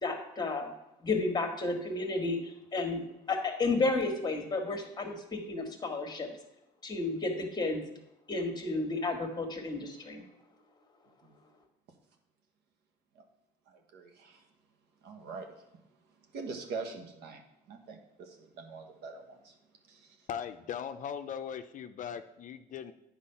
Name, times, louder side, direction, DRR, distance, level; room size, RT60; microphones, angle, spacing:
voice 1, 0.0-0.7 1.0-3.0 3.3-6.3 6.8-7.8 8.3-10.2, left 3 dB, 25° left, 4 dB, 1.4 m, -32 dB
voice 2, 13.7-14.4 15.0-15.5 16.3-17.4 17.7-19.5 19.9-20.2, right 4 dB, 80° right, 4 dB, 1.3 m, -43 dB
voice 3, 20.3-22.9, left 8 dB, 50° left, 9 dB, 0.5 m, -39 dB
8.8 x 4.6 x 5.6 m, 0.87 s
cardioid pair, 110°, 17 cm